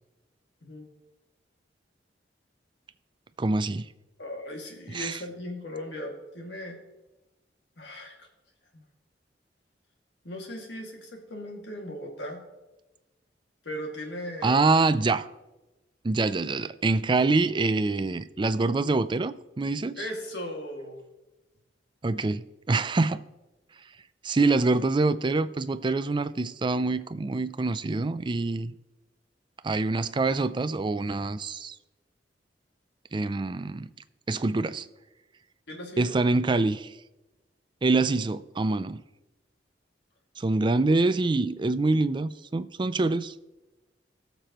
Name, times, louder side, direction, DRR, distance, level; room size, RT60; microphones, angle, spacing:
voice 1, 3.4-3.8 4.9-5.2 14.4-15.3 16.0-20.0 22.0-23.2 24.2-28.7 29.6-31.8 33.1-33.9 34.3-34.9 36.0-37.0 37.8-39.0 40.4-43.3, right 3 dB, 25° right, 0.4 m, -25 dB
voice 2, 4.2-6.8 7.8-8.3 10.2-12.4 13.6-14.6 20.0-21.0 35.7-36.1, left 1 dB, 75° left, 2.2 m, -38 dB
20.0 x 6.8 x 3.0 m
head